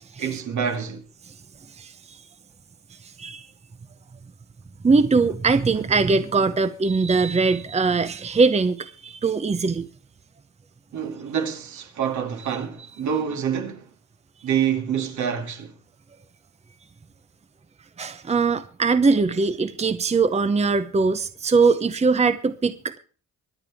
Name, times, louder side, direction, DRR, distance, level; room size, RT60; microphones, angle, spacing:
voice 1, 0.2-1.0 10.9-13.9 14.4-15.7, right 8 dB, 70° right, 2.7 m, -27 dB
voice 2, 4.8-9.9 18.0-23.0, right 4 dB, 20° right, 0.9 m, -21 dB
24.5 x 8.7 x 3.6 m
cardioid pair, 90°, 30 cm